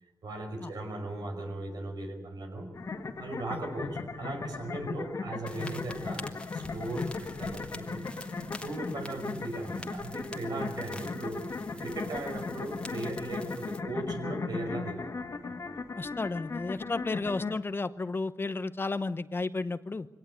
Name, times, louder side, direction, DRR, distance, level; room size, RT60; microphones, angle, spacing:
voice 1, 0.2-2.7 3.2-8.0 8.6-11.5 11.8-15.7, right 2 dB, 75° right, 4 dB, 5.6 m, -38 dB
sound 1, 2.7-17.5, left 4 dB, 50° left, 2.0 m, -38 dB
sound 2, 5.5-13.8, left 1 dB, 15° left, 1.7 m, -46 dB
voice 2, 16.0-20.1, left 3 dB, 35° left, 13 dB, 0.9 m, -33 dB
23.5 x 18.0 x 9.1 m, 0.93 s
wide cardioid pair, 90°, 7 cm